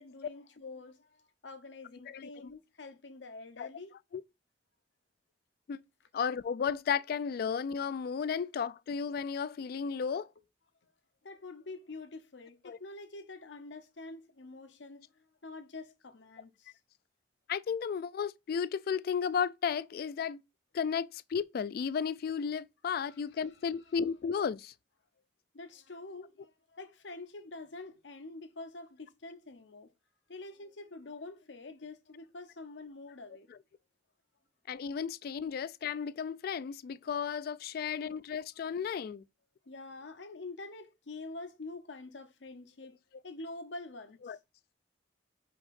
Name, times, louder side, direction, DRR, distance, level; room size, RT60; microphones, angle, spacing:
voice 1, 0.0-3.9 11.2-16.7 23.1-23.2 23.6-23.7 25.5-29.9 30.3-33.5 37.9-38.0 39.7-43.0 43.2-44.4, left 3 dB, 85° left, 0.9 m, -46 dB
voice 2, 2.1-2.5 3.6-3.7 4.1-4.2 5.7-5.8 6.1-10.3 12.7-12.8 17.5-20.4 20.7-24.7 33.5-33.6 34.7-39.2 44.3-44.4, left 6 dB, 55° left, 0.3 m, -34 dB
5.2 x 4.7 x 4.2 m
head